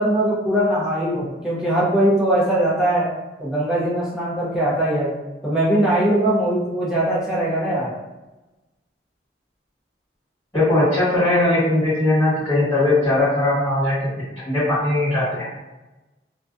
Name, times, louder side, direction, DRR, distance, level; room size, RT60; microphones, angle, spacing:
voice 1, 0.0-3.1 3.4-5.1 5.4-7.9, right 1 dB, 5° right, -8 dB, 0.6 m, -20 dB
voice 2, 10.5-14.1 14.4-15.4, left 2 dB, 20° left, -16 dB, 1.3 m, -19 dB
2.2 x 2.2 x 2.5 m, 1.1 s
head